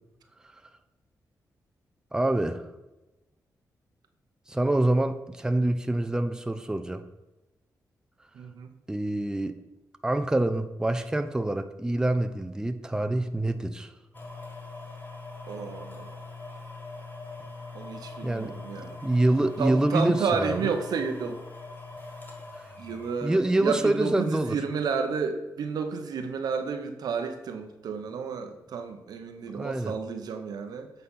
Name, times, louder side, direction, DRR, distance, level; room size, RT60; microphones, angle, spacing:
voice 1, 2.1-2.6 4.5-7.0 8.9-9.6 10.0-13.9 18.2-18.5 19.0-20.6 23.2-24.6 29.5-29.9, right 1 dB, 10° right, 8 dB, 0.6 m, -26 dB
voice 2, 8.3-8.7 15.5-16.2 17.7-19.0 19.6-21.4 22.8-30.9, right 5 dB, 80° right, 6 dB, 0.9 m, -31 dB
sound 1, 14.1-24.2 24.8-24.9, left 3 dB, 30° left, 1.7 m, -43 dB
8.2 x 4.1 x 5.6 m, 1.0 s
cardioid pair, 75°, 7 cm